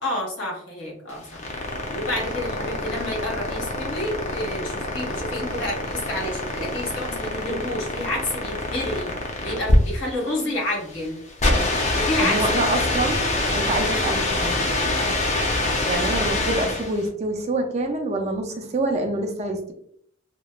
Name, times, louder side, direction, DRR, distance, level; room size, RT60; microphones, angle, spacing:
voice 1, 0.0-1.4 1.9-11.2 11.9-12.6 15.0-15.2, left 1 dB, 65° left, -2 dB, 1.0 m, -29 dB
sound 1, 1.1-17.0, left 2 dB, 35° left, 0.5 m, -25 dB
voice 2, 12.2-13.2 13.5-14.6 15.9-19.7, right 2 dB, 35° right, 4 dB, 0.4 m, -26 dB
2.9 x 2.1 x 2.3 m, 0.63 s
head